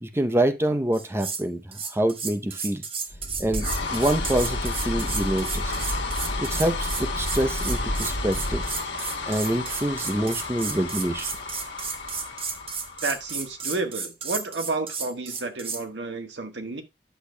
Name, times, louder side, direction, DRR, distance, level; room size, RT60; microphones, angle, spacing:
voice 1, 0.0-2.8 3.4-5.7 6.4-8.6 9.3-11.3, right 1 dB, 15° right, 0.6 m, -26 dB
sound 1, 0.9-1.4 1.7-15.8, right 5 dB, 35° right, 1.1 m, -33 dB
sound 2, 3.1-13.6, left 2 dB, 90° left, 1.4 m, -31 dB
voice 2, 13.0-16.8, right 3 dB, 80° right, 1.3 m, -31 dB
10.0 x 6.7 x 2.2 m
head